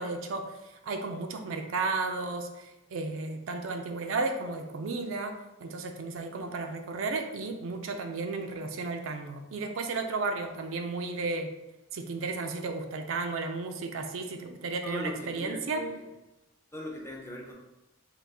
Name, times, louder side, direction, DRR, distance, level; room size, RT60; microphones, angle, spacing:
voice 1, 0.0-11.5 11.9-15.8, right 3 dB, 70° right, 5 dB, 0.4 m, -33 dB
voice 2, 14.8-16.0 16.7-17.5, equal, 15° left, -1 dB, 0.6 m, -39 dB
3.9 x 2.4 x 3.5 m, 0.98 s
head